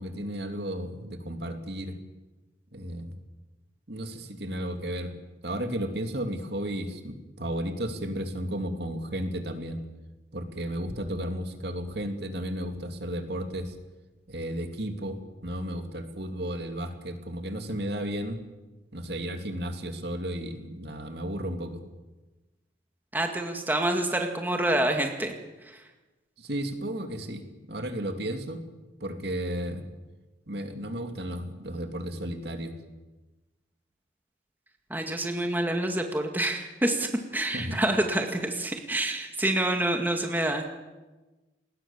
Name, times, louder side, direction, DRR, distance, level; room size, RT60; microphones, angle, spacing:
voice 1, 0.0-2.0 2.7-3.2 3.9-5.1 5.4-9.8 10.3-13.7 14.3-18.4 18.9-21.8 26.4-28.6 29.0-29.8 30.5-32.7 37.5-37.8, right 1 dB, 60° right, 6 dB, 2.7 m, -33 dB
voice 2, 23.1-25.3 25.7-25.8 34.9-40.7, right 1 dB, 10° right, 4 dB, 2.0 m, -27 dB
28.5 x 20.5 x 7.4 m, 1.2 s
head